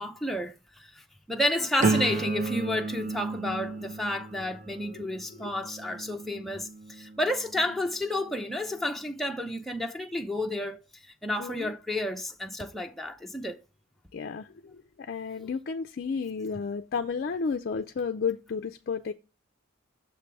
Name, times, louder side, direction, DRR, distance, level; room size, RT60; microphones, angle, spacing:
voice 1, 0.0-13.6, left 1 dB, ahead, 0.6 m, -31 dB
sound 1, 1.8-7.7 8.2-8.6, right 3 dB, 40° right, 0.6 m, -33 dB
voice 2, 11.4-11.7 14.1-19.1, left 5 dB, 50° left, 0.4 m, -32 dB
6.7 x 3.3 x 5.9 m
head